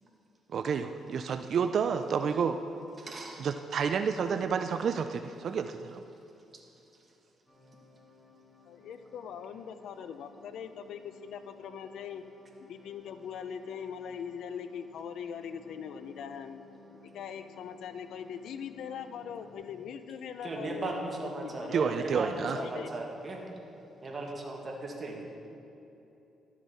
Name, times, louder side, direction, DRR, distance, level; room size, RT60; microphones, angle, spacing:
voice 1, 0.5-2.6 3.4-6.0 21.7-22.6, right 6 dB, 60° right, 8 dB, 0.3 m, -30 dB
voice 2, 3.0-3.5 20.4-23.4 24.0-25.2, right 2 dB, 35° right, 0 dB, 1.6 m, -37 dB
sound 1, 7.5-19.5, left 2 dB, 15° left, 1.7 m, -57 dB
voice 3, 8.7-12.2 12.6-16.6 17.1-21.9 22.5-22.9, left 7 dB, 75° left, 10 dB, 0.5 m, -41 dB
12.0 x 7.2 x 4.1 m, 2.9 s
cardioid pair, 90°, 0 cm